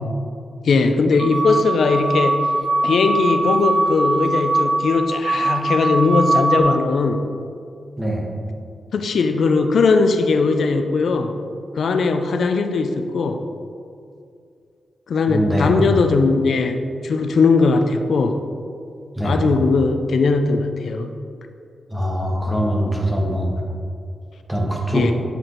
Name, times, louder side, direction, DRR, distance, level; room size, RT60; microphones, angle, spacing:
voice 1, 0.6-2.5 2.8-7.3 8.9-11.4 11.8-13.4 15.1-18.4 19.2-21.1 24.9-25.1, left 4 dB, 60° left, 7 dB, 0.4 m, -19 dB
sound 1, 1.2-6.6, right 2 dB, 30° right, 0.5 m, -21 dB
voice 2, 15.3-15.7 19.2-19.4 21.9-23.5 24.5-25.0, equal, 5° right, -2 dB, 1.0 m, -22 dB
8.1 x 4.4 x 3.9 m, 2.4 s
wide cardioid pair, 165°, 0 cm